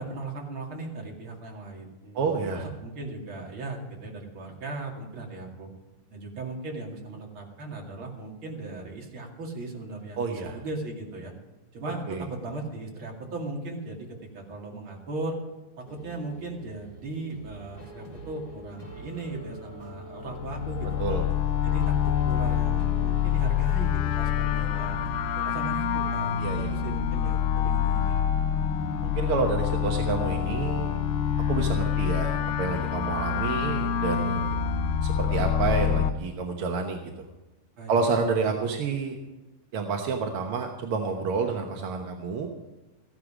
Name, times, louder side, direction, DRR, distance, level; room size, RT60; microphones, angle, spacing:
voice 1, 0.0-5.7 6.1-11.3 11.7-14.1 14.3-15.3 15.8-21.2 21.6-25.0 25.3-28.2 37.8-38.2, right 2 dB, 40° right, 0 dB, 2.9 m, -37 dB
voice 2, 2.1-2.6 10.2-10.6 12.1-12.2 21.0-21.3 26.4-26.7 29.0-31.0 31.5-34.5 35.0-37.0 37.9-39.2 39.7-42.5, right 4 dB, 60° right, 3 dB, 1.5 m, -29 dB
sound 1, 15.8-25.3, right 1 dB, 20° left, 2.3 m, -45 dB
sound 2, 20.2-36.1, left 9 dB, 80° left, 2.3 m, -26 dB
15.0 x 11.5 x 5.0 m, 1.1 s
omnidirectional pair, 3.7 m